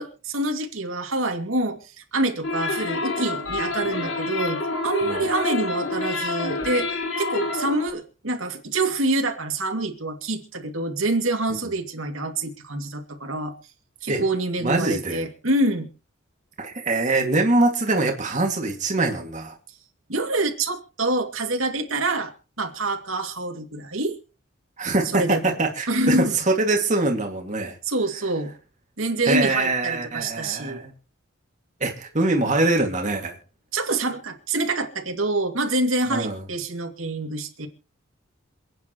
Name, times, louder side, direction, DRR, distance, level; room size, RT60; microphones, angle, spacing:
voice 1, 0.0-6.9 7.2-13.5 14.0-15.9 20.1-24.2 25.1-25.5 25.9-26.4 27.8-28.5 29.0-30.8 33.7-37.7, right 2 dB, 85° right, 3 dB, 2.5 m, -26 dB
sound 1, 2.4-7.9, left 3 dB, 75° left, 3.1 m, -28 dB
voice 2, 14.6-15.2 16.6-19.5 24.8-27.8 29.3-30.9 31.8-33.4 36.1-36.4, right 2 dB, 35° right, 1 dB, 2.3 m, -23 dB
27.5 x 9.3 x 3.1 m, 0.34 s
head